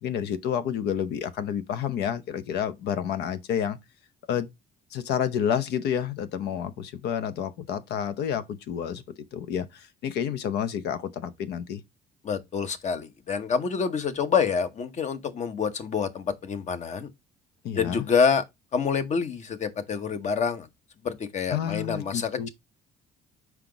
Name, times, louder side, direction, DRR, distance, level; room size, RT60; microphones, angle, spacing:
voice 1, 0.0-3.8 4.3-4.5 4.9-9.0 9.3-11.8 17.6-18.0 21.5-22.5, left 9 dB, 75° left, 0.8 m, -29 dB
voice 2, 12.2-17.1 17.8-18.4 18.7-20.7 21.0-22.5, left 6 dB, 45° left, 1.0 m, -27 dB
5.7 x 4.8 x 3.9 m
cardioid pair, 110°, 17 cm